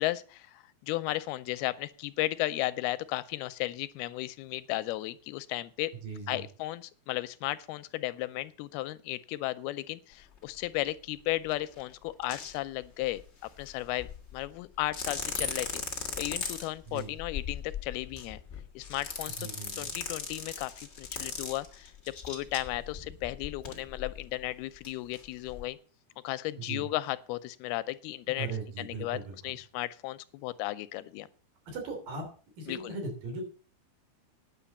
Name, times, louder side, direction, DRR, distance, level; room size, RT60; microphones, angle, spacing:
voice 1, 0.0-5.9 6.3-13.2 13.6-15.8 16.2-18.4 18.8-19.5 19.8-25.8 26.2-28.5 28.8-31.3 32.7-32.9, left 17 dB, 85° left, 14 dB, 2.6 m, -35 dB
voice 2, 6.0-6.4 16.9-17.1 19.4-19.9 26.6-26.9 28.3-29.6 31.7-32.3 32.6-33.4, right 4 dB, 65° right, 3 dB, 4.8 m, -38 dB
sound 1, 10.4-10.5 11.5-11.8 12.2-12.6 12.8-14.5 14.8-24.5 24.8-24.9 25.1-25.6, left 5 dB, 65° left, 0.6 m, -38 dB
10.0 x 7.0 x 7.1 m, 0.40 s
omnidirectional pair, 4.4 m